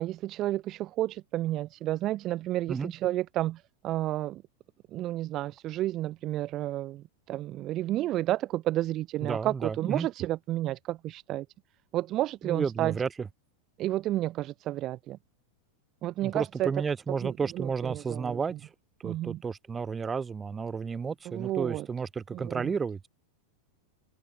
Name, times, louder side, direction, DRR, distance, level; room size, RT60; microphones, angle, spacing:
voice 1, 0.0-4.4 4.9-11.5 11.9-13.0 13.8-15.2 16.0-16.7 17.2-18.4 19.0-19.4 21.2-21.9 22.3-22.7, right 14 dB, 35° right, 1.5 m, -31 dB
voice 2, 9.2-10.1 12.4-13.1 16.2-18.7 19.0-23.1, right 5 dB, 15° right, 4.6 m, -32 dB
figure-of-eight pair, 90°, 0 cm